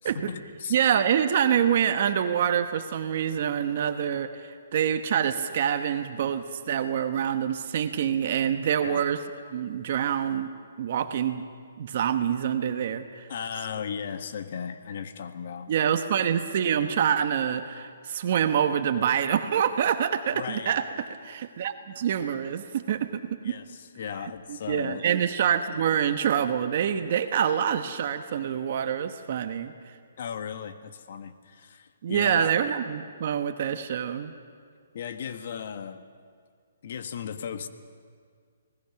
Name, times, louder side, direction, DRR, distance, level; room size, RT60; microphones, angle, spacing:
voice 1, 0.0-0.7 8.8-9.0 13.3-15.7 20.3-20.8 23.4-25.1 25.8-26.1 30.2-32.5 34.9-36.1 36.8-37.7, left 7 dB, 55° left, 8 dB, 1.5 m, -36 dB
voice 2, 0.7-9.2 9.5-10.5 10.8-11.4 11.8-13.3 15.7-20.8 21.2-23.5 24.7-29.7 32.0-34.3, right 8 dB, 50° right, 8 dB, 1.2 m, -26 dB
29.5 x 19.5 x 6.0 m, 2.1 s
hypercardioid pair, 155°, 0 cm